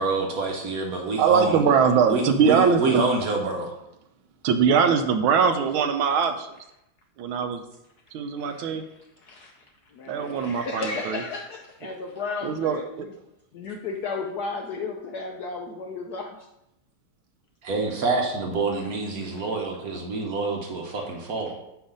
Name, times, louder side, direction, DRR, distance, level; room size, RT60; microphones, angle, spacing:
voice 1, 0.0-1.6 2.1-3.7 17.6-21.5, right 3 dB, 55° right, 1 dB, 1.1 m, -27 dB
voice 2, 1.2-3.0 4.4-6.5 7.2-7.6 8.1-8.8 10.1-11.2 11.8-11.9 12.4-13.1, right 6 dB, 80° right, 7 dB, 1.4 m, -22 dB
voice 3, 9.9-13.1 13.5-16.3 19.3-19.4, left 4 dB, 70° left, 1 dB, 0.9 m, -34 dB
9.1 x 3.2 x 5.1 m, 0.86 s
omnidirectional pair, 2.3 m